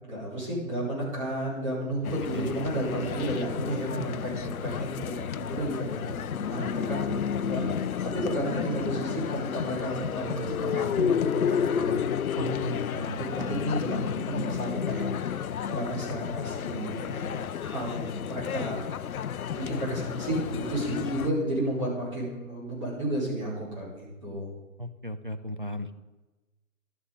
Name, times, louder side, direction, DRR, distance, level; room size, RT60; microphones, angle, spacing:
voice 1, 0.0-12.0 12.3-18.8 19.5-24.5, right 1 dB, 20° right, -8 dB, 4.6 m, -32 dB
sound 1, 2.0-21.3, left 8 dB, 80° left, 0.6 m, -31 dB
voice 2, 2.3-2.7 14.4-14.5 24.8-25.9, left 1 dB, 40° right, 8 dB, 0.4 m, -36 dB
12.5 x 7.1 x 5.3 m, 1.1 s
hypercardioid pair, 175°, 42 cm